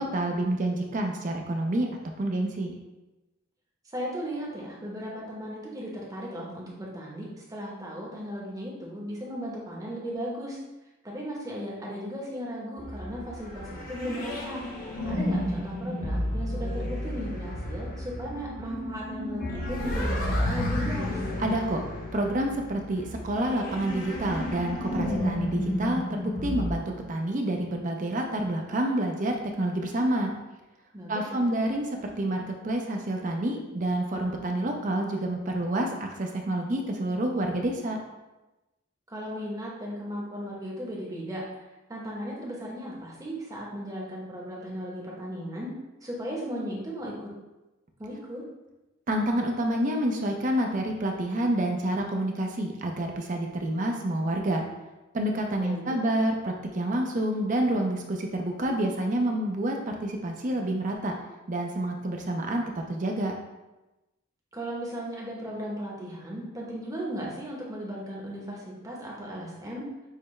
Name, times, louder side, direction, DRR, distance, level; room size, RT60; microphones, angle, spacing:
voice 1, 0.0-1.9 2.2-2.7 21.4-21.8 22.1-30.3 31.1-38.0 49.1-54.6 55.1-61.1 61.5-63.3, right 1 dB, 40° right, 2 dB, 0.5 m, -28 dB
voice 2, 3.9-10.6 11.0-14.6 15.0-21.3 30.9-31.4 39.1-41.4 41.9-45.7 46.0-47.3 48.0-48.4 55.6-56.0 64.5-69.9, equal, 15° right, -4 dB, 0.8 m, -36 dB
sound 1, 12.8-26.8, left 1 dB, 40° left, 0.8 m, -32 dB
6.5 x 2.2 x 3.1 m, 1.0 s
head